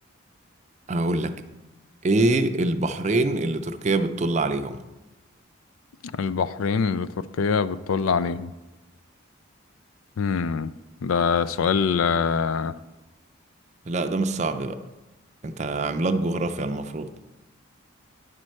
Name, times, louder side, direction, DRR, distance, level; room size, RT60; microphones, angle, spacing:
voice 1, 0.9-1.4 2.0-4.8 13.9-14.8 15.4-17.1, right 2 dB, 35° right, 8 dB, 0.5 m, -24 dB
voice 2, 6.1-7.1 7.4-8.5 10.2-10.7 11.0-12.7, left 6 dB, 80° left, 16 dB, 0.4 m, -24 dB
10.0 x 4.4 x 6.4 m, 1.1 s
head